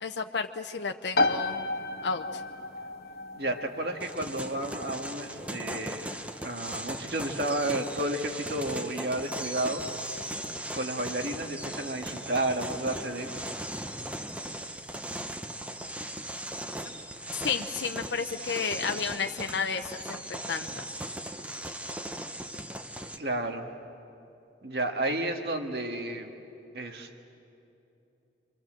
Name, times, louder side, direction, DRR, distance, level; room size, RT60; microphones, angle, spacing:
voice 1, 0.0-1.6 2.0-2.4 17.4-20.9, left 5 dB, 85° left, 6 dB, 0.7 m, -32 dB
sound 1, 1.1-15.6, left 2 dB, 60° left, 1.3 m, -36 dB
voice 2, 3.3-9.8 10.7-13.3 23.2-23.7 24.6-26.3 26.7-27.2, right 1 dB, 65° right, 4 dB, 1.8 m, -32 dB
sound 2, 4.0-23.2, right 1 dB, 10° right, 0.8 m, -38 dB
28.0 x 24.5 x 7.6 m, 2.8 s
head